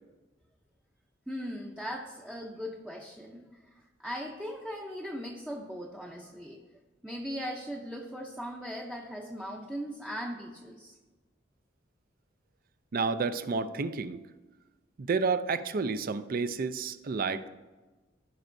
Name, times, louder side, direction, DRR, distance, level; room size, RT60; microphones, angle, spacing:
voice 1, 1.3-6.6 7.0-10.9, equal, 5° right, -2 dB, 0.6 m, -39 dB
voice 2, 12.9-14.2 15.0-17.5, right 4 dB, 50° right, 12 dB, 0.4 m, -30 dB
15.0 x 5.2 x 2.6 m, 1.2 s
head